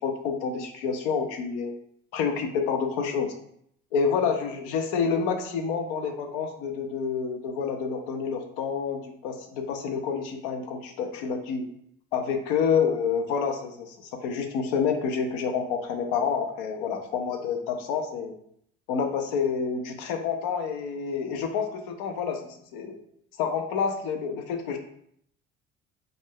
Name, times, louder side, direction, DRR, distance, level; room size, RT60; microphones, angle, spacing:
voice 1, 0.0-1.7 2.1-3.3 3.9-11.6 12.1-18.3 18.9-23.0 23.4-24.8, left 6 dB, 80° left, 5 dB, 0.5 m, -28 dB
2.4 x 2.1 x 3.5 m, 0.69 s
hypercardioid pair, 70°, 29 cm